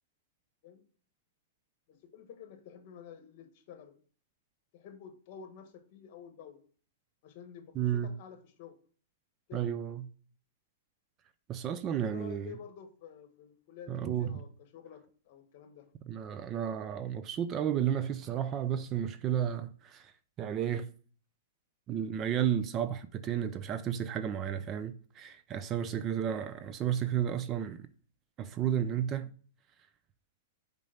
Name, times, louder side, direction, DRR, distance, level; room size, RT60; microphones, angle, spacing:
voice 1, 1.9-4.0 4.7-6.6 7.2-8.8 9.5-9.7 12.0-15.9 25.9-26.1, left 8 dB, 45° left, 1.6 m, -50 dB
voice 2, 7.8-8.1 9.5-10.0 11.5-12.5 13.9-14.3 16.1-20.1 20.4-20.9 21.9-27.8 28.4-29.3, right 9 dB, 25° right, 0.5 m, -32 dB
6.2 x 5.2 x 5.7 m
hypercardioid pair, 150°, 0 cm